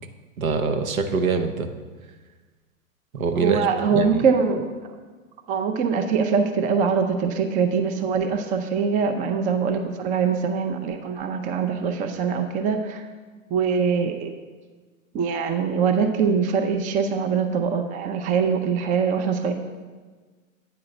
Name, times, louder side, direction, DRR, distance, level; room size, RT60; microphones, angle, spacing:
voice 1, 0.4-1.7 3.1-4.2, right 4 dB, 85° right, 6 dB, 0.9 m, -24 dB
voice 2, 3.4-4.7 5.5-13.1 13.5-14.3 15.1-19.5, right 6 dB, 20° right, 6 dB, 0.5 m, -23 dB
9.0 x 3.8 x 6.5 m, 1.4 s
hypercardioid pair, 110°, 40 cm